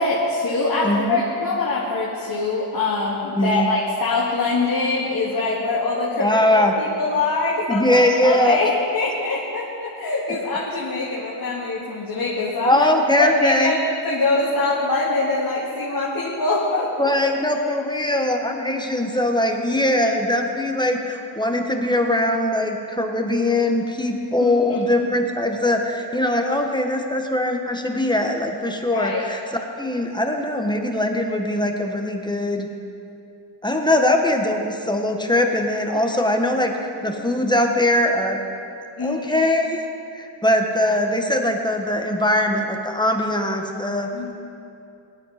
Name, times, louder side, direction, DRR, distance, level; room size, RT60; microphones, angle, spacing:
voice 1, 0.0-6.4 6.8-12.8 13.2-17.1 24.4-25.1 28.9-29.3 35.9-36.2 37.0-37.2 39.0-39.5 40.9-41.0 44.1-44.3, left 3 dB, 45° left, -6 dB, 2.5 m, -24 dB
voice 2, 0.8-1.2 3.4-3.7 6.1-6.7 7.7-8.6 12.6-13.8 17.0-29.4 29.8-32.7 33.6-38.4 39.0-39.8 40.1-44.1, left 1 dB, 10° left, 2 dB, 1.4 m, -21 dB
17.5 x 12.0 x 4.3 m, 2.6 s
cardioid pair, 70°, 48 cm